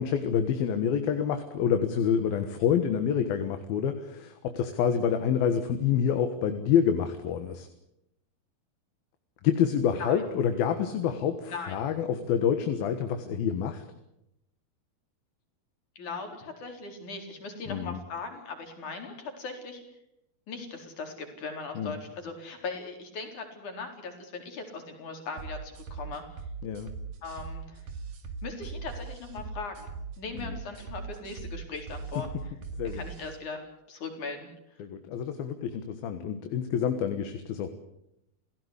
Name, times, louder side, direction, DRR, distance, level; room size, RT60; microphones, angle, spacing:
voice 1, 0.0-7.7 9.4-13.9 17.7-18.0 21.8-22.0 26.6-26.9 30.4-30.6 32.8-33.0 34.8-37.7, left 8 dB, 70° left, 7 dB, 3.3 m, -27 dB
voice 2, 16.0-19.8 20.5-26.2 27.2-27.9 28.4-29.9 30.2-32.3 32.8-33.6 33.9-34.5, left 4 dB, 50° left, 4 dB, 5.4 m, -39 dB
sound 1, 25.4-33.4, right 5 dB, 55° right, 3.5 m, -40 dB
29.5 x 17.0 x 8.2 m, 0.83 s
omnidirectional pair, 4.5 m